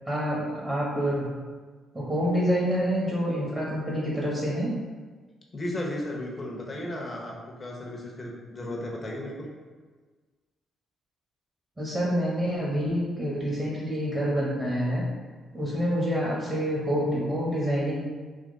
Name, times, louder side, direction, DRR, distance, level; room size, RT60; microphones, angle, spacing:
voice 1, 0.0-1.3 1.9-4.7 11.8-15.0 15.5-18.0, equal, 20° right, -6 dB, 1.3 m, -27 dB
voice 2, 5.5-9.5, left 1 dB, 30° left, -2 dB, 1.0 m, -35 dB
3.7 x 2.9 x 4.0 m, 1.4 s
cardioid pair, 90°, 0 cm